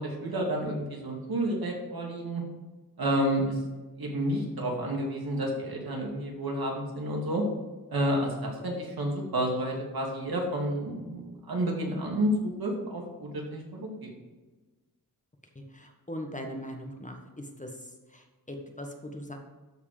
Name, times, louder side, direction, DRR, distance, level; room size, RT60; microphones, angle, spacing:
voice 1, 0.0-2.4 3.0-3.6 4.0-7.4 7.9-14.1, right 1 dB, 70° right, 0 dB, 2.5 m, -30 dB
voice 2, 15.5-19.4, equal, 20° left, 3 dB, 1.4 m, -40 dB
13.0 x 4.9 x 5.0 m, 1.3 s
wide cardioid pair, 80°, 38 cm